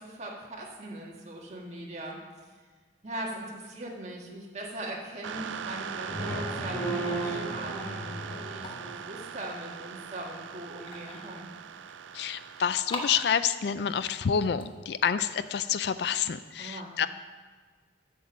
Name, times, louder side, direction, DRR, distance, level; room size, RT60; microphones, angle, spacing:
voice 1, 0.0-2.2 3.0-11.5 16.6-17.0, right 1 dB, 35° right, -2 dB, 1.7 m, -40 dB
sound 1, 5.2-12.8, right 7 dB, 90° right, 0.4 m, -40 dB
sound 2, 6.1-9.1, right 2 dB, 15° left, 2.5 m, -34 dB
sound 3, 6.7-16.1, left 2 dB, 30° left, 1.0 m, -46 dB
voice 2, 12.1-17.1, left 7 dB, 65° left, 13 dB, 0.4 m, -28 dB
8.0 x 7.5 x 6.3 m, 1.5 s
head